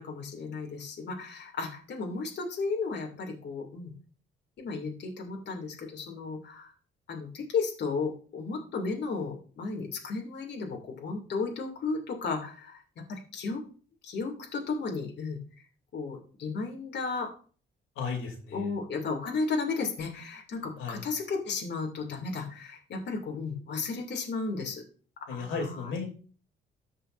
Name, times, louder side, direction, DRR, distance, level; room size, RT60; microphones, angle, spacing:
voice 1, 0.0-3.9 4.6-6.7 7.1-13.6 14.0-15.4 15.9-17.3 18.5-24.8 25.2-25.9, left 4 dB, 60° left, 1 dB, 2.4 m, -34 dB
voice 2, 17.9-18.7 20.8-21.0 25.3-26.0, left 5 dB, 85° left, 2 dB, 2.8 m, -34 dB
14.5 x 5.6 x 2.5 m, 0.40 s
cardioid pair, 90°, 20 cm